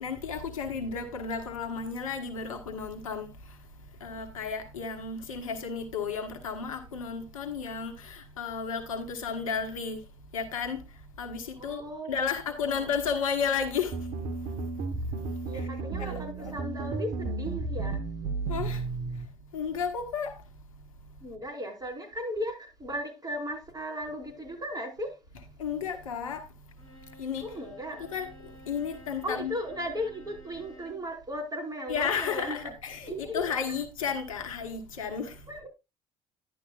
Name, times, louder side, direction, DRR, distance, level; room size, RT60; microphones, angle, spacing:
voice 1, 0.0-3.3 4.0-10.0 10.3-10.8 11.2-11.8 12.1-13.9 16.0-16.5 18.5-18.8 19.5-20.3 25.6-26.4 27.2-27.5 28.1-28.3 28.7-29.6 31.9-35.3, left 6 dB, 80° left, 1.3 m, -33 dB
voice 2, 11.6-12.1 15.5-18.0 21.2-25.2 27.4-28.1 29.2-32.7 33.1-33.4 35.5-35.7, equal, 20° right, 5.0 m, -36 dB
sound 1, 13.9-19.3, right 3 dB, 60° right, 1.4 m, -33 dB
Bowed string instrument, 26.8-31.1, equal, 25° left, 5.0 m, -52 dB
11.5 x 10.5 x 2.4 m
figure-of-eight pair, 55°, 17 cm